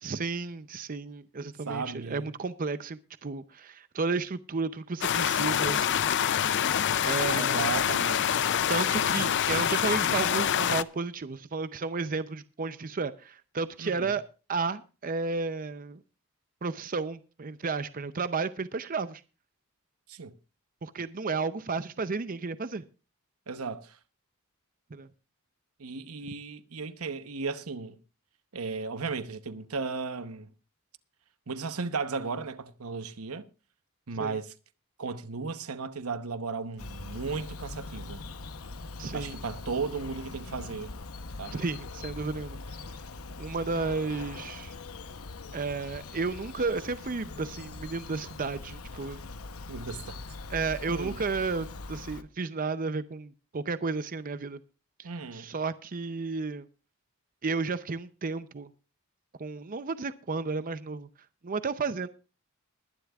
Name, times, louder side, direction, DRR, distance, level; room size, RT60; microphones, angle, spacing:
voice 1, 0.0-6.0 7.0-7.7 8.7-14.2 14.5-16.0 16.6-19.2 20.8-22.8 24.9-25.1 34.2-34.4 39.0-39.4 41.5-42.6 43.4-44.7 45.5-49.2 50.5-54.6 55.0-56.7 57.4-58.7 59.4-61.1 61.4-62.1, right 4 dB, 40° right, 0.6 m, -32 dB
voice 2, 1.7-2.3 7.3-8.5 13.8-14.2 20.1-20.3 23.5-24.0 25.8-28.0 28.5-30.5 31.5-33.5 34.1-34.5 35.0-38.2 39.1-40.9 41.4-41.6 49.7-50.2 50.9-51.2 55.0-55.5, right 4 dB, 80° right, 0.9 m, -35 dB
sound 1, 5.0-10.8, left 9 dB, 55° left, 0.5 m, -26 dB
Bird vocalization bird call bird song, 36.8-52.2, left 3 dB, 80° left, 0.9 m, -42 dB
21.5 x 11.5 x 2.4 m
head